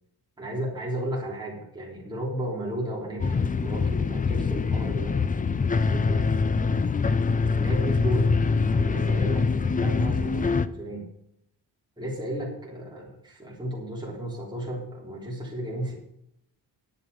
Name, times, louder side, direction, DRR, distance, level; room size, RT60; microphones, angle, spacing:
voice 1, 0.4-5.2 5.7-6.3 7.1-7.2 7.5-8.4 8.7-11.1 12.0-15.9, equal, 10° right, -3 dB, 3.3 m, -33 dB
sound 1, 3.2-10.7, left 4 dB, 20° left, 0.3 m, -24 dB
10.5 x 8.2 x 5.4 m, 0.73 s
wide cardioid pair, 175°, 42 cm